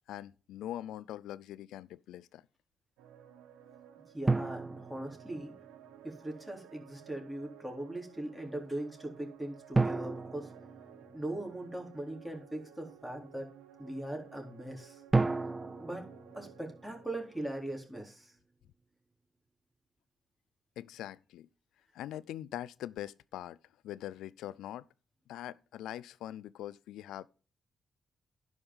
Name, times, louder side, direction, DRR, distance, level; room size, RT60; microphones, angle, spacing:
voice 1, 0.1-2.4 20.8-21.5 21.9-23.6 23.8-24.8 25.3-27.3, left 12 dB, 80° left, 0.4 m, -42 dB
sound 1, 3.0-17.5, right 10 dB, 85° right, 0.8 m, -56 dB
voice 2, 4.1-5.5 6.0-10.5 11.1-13.5 13.8-15.0 15.8-16.1 16.3-18.3, right 1 dB, ahead, 3.8 m, -40 dB
sound 2, 4.3-5.9 9.7-11.6 15.1-17.4, right 3 dB, 25° right, 0.6 m, -33 dB
11.0 x 5.2 x 5.6 m
hypercardioid pair, 45°, 0 cm